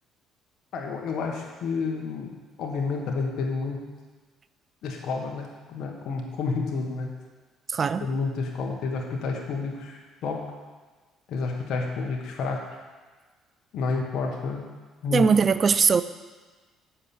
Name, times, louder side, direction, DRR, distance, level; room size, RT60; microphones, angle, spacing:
voice 1, 0.7-3.9 4.8-7.1 8.0-10.5 11.3-12.7 13.7-14.7 15.0-15.2, left 4 dB, 65° left, 1 dB, 1.2 m, -30 dB
voice 2, 7.7-8.1 15.1-16.0, right 5 dB, 40° right, 13 dB, 0.5 m, -20 dB
7.6 x 5.7 x 6.9 m, 1.4 s
supercardioid pair, 75°, 0 cm